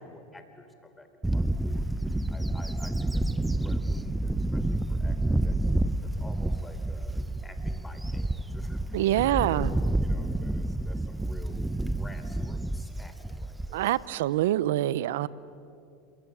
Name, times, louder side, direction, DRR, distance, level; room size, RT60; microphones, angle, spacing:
voice 1, 0.0-13.9, left 1 dB, 10° left, 7 dB, 3.7 m, -50 dB
Bird / Wind, 1.2-14.0, right 1 dB, 5° right, 0.8 m, -29 dB
voice 2, 8.9-9.7 13.7-15.3, right 14 dB, 80° right, 19 dB, 0.8 m, -25 dB
27.5 x 22.0 x 8.8 m, 2.4 s
hypercardioid pair, 105°, 0 cm